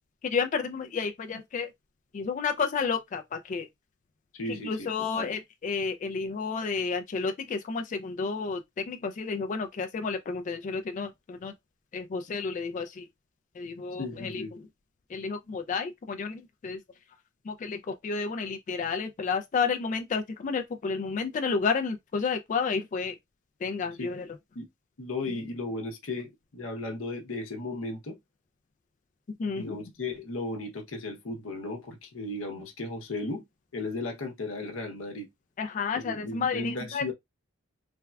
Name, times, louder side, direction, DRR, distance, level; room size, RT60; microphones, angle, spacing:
voice 1, 0.2-1.7 2.1-3.7 4.5-8.6 8.9-11.5 11.9-13.1 13.6-14.4 15.1-16.8 17.5-23.2 23.6-24.3 29.4-29.8 35.6-37.1, left 5 dB, 35° left, 0.3 m, -31 dB
voice 2, 4.3-4.9 5.1-5.3 14.0-14.5 24.0-24.1 24.5-24.7 25.0-28.2 29.5-33.4 33.7-35.3 35.9-37.1, left 2 dB, 70° left, 0.7 m, -35 dB
3.3 x 2.2 x 2.2 m
head